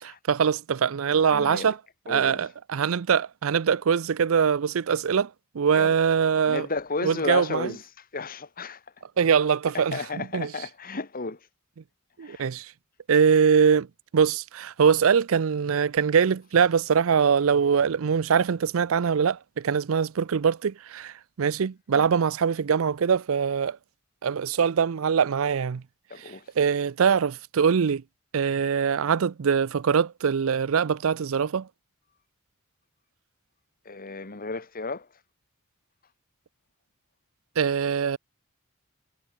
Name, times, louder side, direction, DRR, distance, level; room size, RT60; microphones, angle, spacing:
voice 1, 0.0-1.8 2.1-5.3 5.5-6.7 7.0-7.7 9.2-10.5 12.2-12.7 13.1-13.9 14.1-23.8 24.2-25.8 26.6-28.0 28.3-31.7 37.6-38.2, right 6 dB, 70° right, 0.5 m, -23 dB
voice 2, 1.2-1.7 2.1-2.5 5.7-5.9 6.5-8.8 9.7-11.4 12.2-12.5 21.9-22.1 26.1-26.5 33.8-35.1, left 3 dB, 40° left, 1.7 m, -33 dB
head